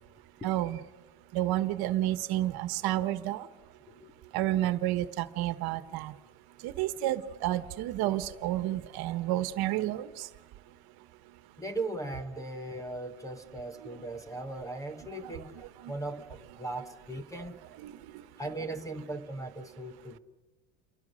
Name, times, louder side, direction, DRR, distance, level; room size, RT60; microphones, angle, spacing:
voice 1, 0.4-0.8 1.3-3.5 4.3-6.1 6.6-10.3 15.2-15.4 15.8-15.9 17.8-18.1, right 14 dB, 55° right, 13 dB, 1.4 m, -30 dB
voice 2, 3.9-4.3 11.6-17.6 18.4-20.2, right 2 dB, 5° left, 10 dB, 0.8 m, -38 dB
29.0 x 23.5 x 6.5 m, 1.2 s
cardioid pair, 175°, 44 cm